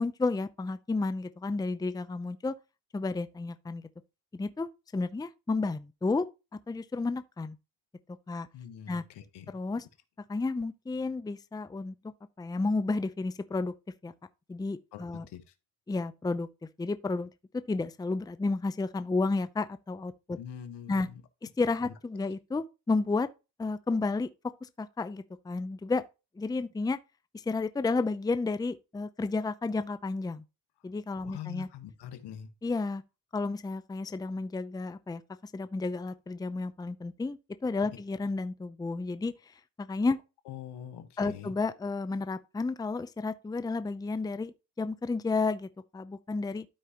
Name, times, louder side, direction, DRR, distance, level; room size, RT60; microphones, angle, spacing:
voice 1, 0.0-2.6 2.9-3.8 4.3-6.3 6.7-7.6 8.3-8.5 8.9-9.0 9.5-9.9 10.3-11.9 12.4-13.7 14.0-14.1 14.5-15.3 15.9-16.5 16.8-20.4 20.9-21.1 21.6-23.3 23.6-24.3 24.6-26.0 26.4-27.0 27.3-30.4 30.8-31.7 32.6-33.0 33.3-39.3 39.8-40.2 41.2-46.7, left 3 dB, 10° left, 0.6 m, -32 dB
voice 2, 8.5-9.6 14.9-15.4 20.4-21.2 21.8-21.9 31.3-32.5 40.5-41.5, left 10 dB, 75° left, 1.4 m, -43 dB
12.5 x 4.8 x 2.9 m
supercardioid pair, 65°, 41 cm